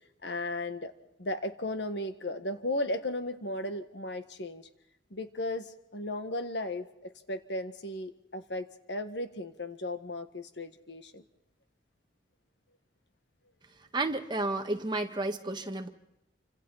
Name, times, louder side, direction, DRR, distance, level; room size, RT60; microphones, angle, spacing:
voice 1, 0.2-0.9 1.2-4.7 5.1-11.2, left 1 dB, 75° left, 1.7 m, -35 dB
voice 2, 13.9-15.9, right 2 dB, 25° right, 1.6 m, -31 dB
28.5 x 26.0 x 4.2 m
head